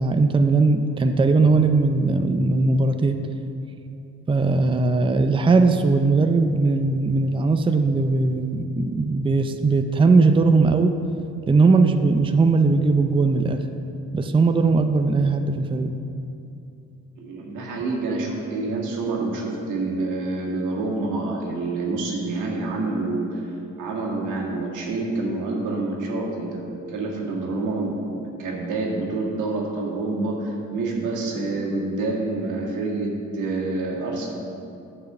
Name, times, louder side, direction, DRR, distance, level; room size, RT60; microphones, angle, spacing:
voice 1, 0.0-3.2 4.3-10.9 11.5-13.6 14.1-15.9, right 3 dB, 15° right, 7 dB, 0.5 m, -19 dB
voice 2, 17.2-23.4 23.8-34.3, right 2 dB, 90° right, -2 dB, 2.0 m, -27 dB
10.5 x 4.9 x 6.6 m, 2.7 s
cardioid pair, 90°, 30 cm